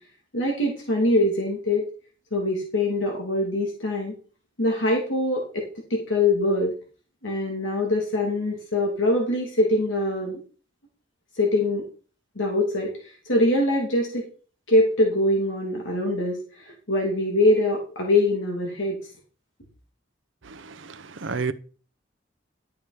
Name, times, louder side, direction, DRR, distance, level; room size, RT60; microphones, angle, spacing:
voice 1, 0.3-1.9 2.3-4.1 4.6-5.6 5.9-6.7 7.2-10.4 11.3-11.8 12.4-14.3 14.7-19.0, left 1 dB, 85° left, 2.8 m, -23 dB
voice 2, 20.4-21.5, right 4 dB, 85° right, 0.8 m, -31 dB
12.5 x 7.2 x 5.0 m
head